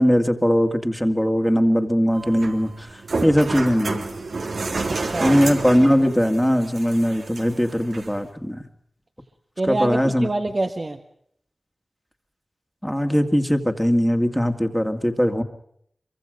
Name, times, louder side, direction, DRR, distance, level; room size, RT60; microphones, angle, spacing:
voice 1, 0.0-2.9 3.2-4.1 5.2-8.6 9.7-10.3 12.8-15.4, equal, 5° left, 5 dB, 2.1 m, -20 dB
sound 1, 2.1-8.1, right 3 dB, 90° right, 3.2 m, -30 dB
voice 2, 4.8-5.4 9.6-11.0, right 2 dB, 40° right, 5 dB, 1.5 m, -26 dB
26.0 x 24.0 x 5.1 m, 0.68 s
wide cardioid pair, 90°, 0 cm